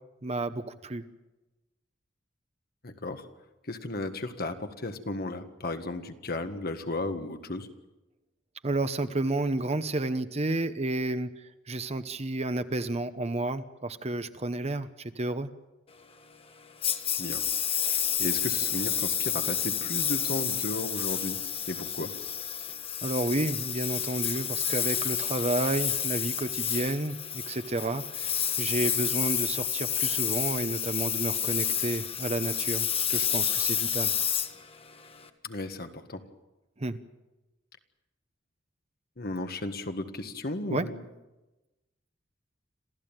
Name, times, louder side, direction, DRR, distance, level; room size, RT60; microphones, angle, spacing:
voice 1, 0.2-1.0 8.6-11.3 11.7-15.5 23.0-34.2 36.8-37.0 40.7-40.9, right 2 dB, 35° right, 11 dB, 1.0 m, -31 dB
voice 2, 2.8-3.3 3.6-7.7 17.2-21.4 21.7-22.1 35.4-36.2 39.2-41.0, left 2 dB, 50° left, 7 dB, 1.7 m, -35 dB
Engine, 16.8-35.3, left 8 dB, 30° left, 1.4 m, -30 dB
27.0 x 15.0 x 9.0 m, 1.1 s
head